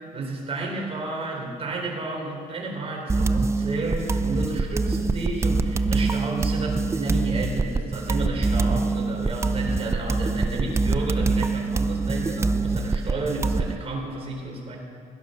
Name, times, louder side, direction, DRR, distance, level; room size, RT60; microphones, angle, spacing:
voice 1, 0.1-14.8, right 2 dB, 35° right, -1 dB, 3.9 m, -32 dB
sound 1, 3.1-13.8, right 3 dB, 15° right, 0.5 m, -24 dB
17.0 x 10.5 x 6.6 m, 2.1 s
cardioid pair, 110°, 17 cm